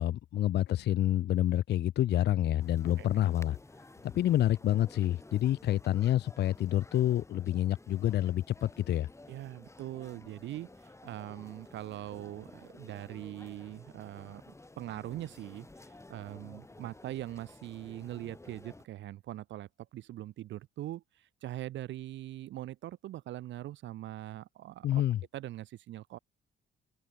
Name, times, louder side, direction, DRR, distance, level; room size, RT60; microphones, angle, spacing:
voice 1, 0.0-3.6 4.0-9.1 24.8-25.2, left 12 dB, 60° left, 0.5 m, -28 dB
sound 1, 2.6-18.9, left 2 dB, 15° left, 3.9 m, -53 dB
voice 2, 9.3-25.0 25.3-26.2, right 14 dB, 70° right, 0.5 m, -42 dB
open air
cardioid pair, 90°, 20 cm